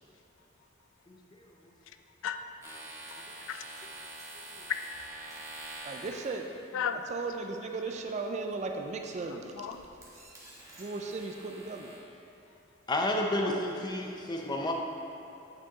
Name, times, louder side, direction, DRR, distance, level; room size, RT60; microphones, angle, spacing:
voice 1, 2.2-5.2 6.7-7.0 9.6-9.8 13.4-13.6, left 8 dB, 75° left, 8 dB, 0.3 m, -38 dB
sound 1, 2.6-6.6 8.6-9.0 9.4-12.0, right 2 dB, 15° right, 1.2 m, -46 dB
voice 2, 5.8-6.5 6.9-9.7 10.8-11.9, right 3 dB, 35° right, 3 dB, 0.4 m, -36 dB
voice 3, 12.9-14.7, left 1 dB, 20° left, 1 dB, 0.5 m, -30 dB
8.5 x 4.6 x 2.9 m, 3.0 s
head